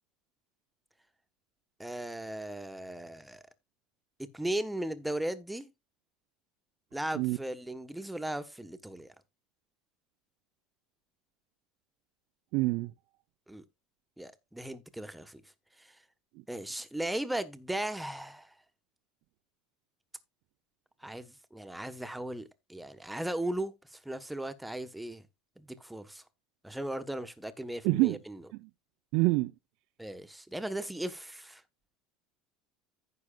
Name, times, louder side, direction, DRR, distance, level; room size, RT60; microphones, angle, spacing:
voice 1, 1.8-3.4 4.2-5.7 6.9-9.1 13.5-13.6 14.2-15.4 15.8-16.0 16.5-18.6 21.0-25.3 25.6-26.2 26.6-28.4 30.0-31.6, right 1 dB, 5° right, 1.3 m, -37 dB
voice 2, 12.5-12.9 27.8-28.2 28.6-28.7 29.1-29.5, right 21 dB, 65° right, 0.7 m, -26 dB
15.0 x 6.4 x 2.4 m
supercardioid pair, 135°, 0 cm